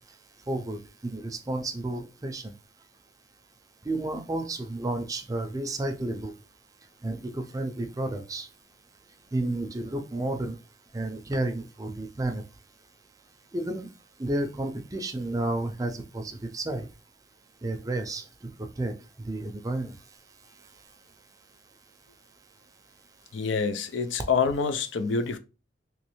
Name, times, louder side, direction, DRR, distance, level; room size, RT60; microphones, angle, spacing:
voice 1, 0.5-2.5 3.8-6.3 7.0-8.5 9.3-10.6 10.9-12.4 13.5-13.9 14.2-16.9 17.6-18.9 19.2-20.0, right 2 dB, 20° right, 0.4 m, -31 dB
voice 2, 23.3-25.4, left 5 dB, 75° left, 0.5 m, -26 dB
3.1 x 3.0 x 3.0 m
head